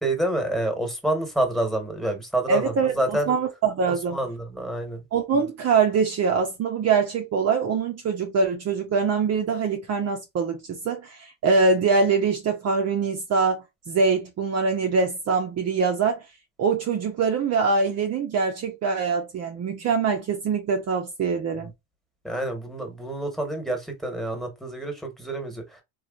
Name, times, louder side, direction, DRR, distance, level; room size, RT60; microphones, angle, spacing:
voice 1, 0.0-3.3 3.9-5.0 21.6-21.7 22.2-25.8, right 1 dB, ahead, 1.3 m, -28 dB
voice 2, 2.5-4.2 5.1-16.2 16.6-21.7, right 5 dB, 40° right, 0.7 m, -23 dB
3.1 x 2.4 x 2.4 m
supercardioid pair, 85°, 39 cm